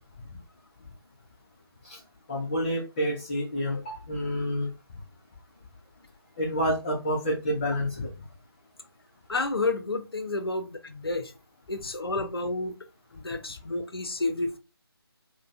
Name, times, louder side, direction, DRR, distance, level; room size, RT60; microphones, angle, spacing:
voice 1, 2.3-4.7 6.4-8.1, equal, 20° left, 0.6 m, -28 dB
voice 2, 9.3-11.3 11.7-12.8 13.1-14.6, left 2 dB, 65° left, 0.8 m, -30 dB
3.8 x 2.3 x 2.4 m
figure-of-eight pair, 155°, 13 cm